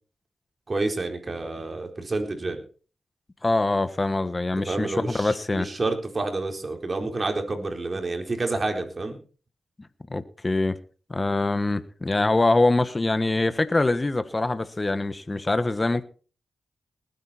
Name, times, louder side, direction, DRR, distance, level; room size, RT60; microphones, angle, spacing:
voice 1, 0.7-2.6 4.5-9.2, right 3 dB, 45° right, 4.2 m, -29 dB
voice 2, 3.4-5.7 10.1-10.8 11.1-16.0, left 2 dB, 30° left, 1.3 m, -24 dB
19.5 x 9.2 x 4.4 m
cardioid pair, 45°, 0 cm